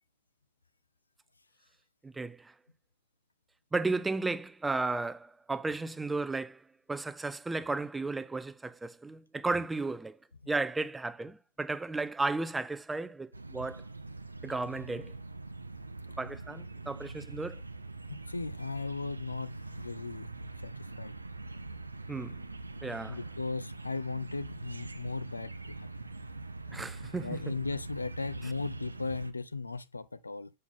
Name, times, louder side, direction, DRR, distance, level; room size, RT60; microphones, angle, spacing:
voice 1, 2.0-2.5 3.7-10.2 10.5-13.8 14.4-15.2 16.2-17.6 22.1-22.4 22.8-23.2 26.7-27.5, right 3 dB, 10° right, 0.5 m, -34 dB
sound 1, 13.3-29.3, right 3 dB, 80° right, 0.5 m, -43 dB
voice 2, 18.1-21.1 23.1-26.1 27.2-30.5, left 3 dB, 80° left, 0.4 m, -37 dB
7.2 x 5.4 x 3.7 m
figure-of-eight pair, 90°, 0 cm